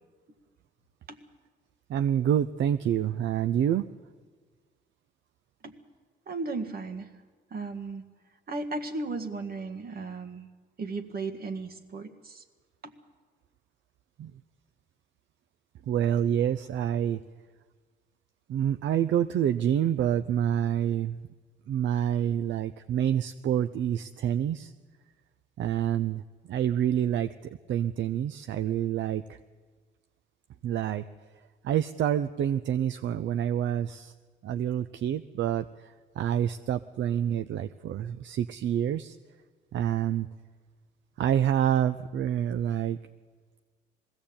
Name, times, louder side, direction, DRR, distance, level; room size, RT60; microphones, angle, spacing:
voice 1, 1.9-3.9 14.2-14.3 15.9-17.2 18.5-21.2 21.7-24.7 25.6-26.2 26.5-27.3 27.7-29.4 30.6-31.0 31.6-34.1 34.4-39.2 39.7-40.3 41.2-43.0, right 10 dB, 70° right, 11 dB, 0.6 m, -27 dB
voice 2, 6.3-7.1 7.5-8.0 8.5-10.5 10.8-12.4 12.8-12.9, right 3 dB, 50° right, 6 dB, 1.8 m, -35 dB
20.5 x 16.0 x 8.7 m, 1.5 s
cardioid pair, 90°, 20 cm